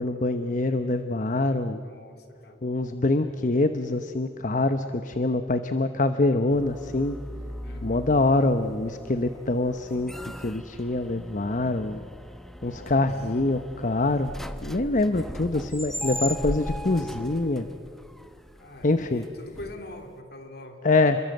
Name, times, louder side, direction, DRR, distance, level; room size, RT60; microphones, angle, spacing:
voice 1, 0.0-1.8 2.6-7.2 7.8-10.1 10.4-12.0 12.6-14.3 14.6-17.7 18.8-19.2 20.8-21.2, left 2 dB, 45° left, 9 dB, 0.9 m, -25 dB
voice 2, 1.7-2.6 7.6-8.0 12.6-13.0 18.5-20.8, left 1 dB, 65° left, 5 dB, 3.1 m, -44 dB
sound 1, 6.5-20.2, equal, ahead, 1.0 m, -38 dB
29.5 x 22.5 x 7.8 m, 2.2 s
head